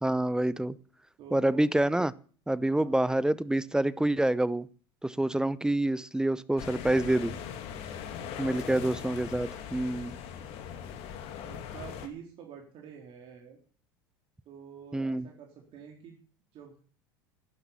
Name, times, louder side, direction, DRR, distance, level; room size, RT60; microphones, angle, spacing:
voice 1, 0.0-0.8 1.3-2.1 2.5-4.7 5.0-7.4 8.4-10.2 14.9-15.3, right 1 dB, 5° right, 18 dB, 0.7 m, -27 dB
voice 2, 1.2-1.7 2.7-3.0 8.5-8.8 11.4-13.6 14.5-16.2 16.5-16.8, right 7 dB, 45° right, 1 dB, 3.8 m, -47 dB
sound 1, 6.6-12.1, left 8 dB, 55° left, 2.3 m, -40 dB
12.0 x 11.0 x 7.0 m, 0.42 s
hypercardioid pair, 80°, 12 cm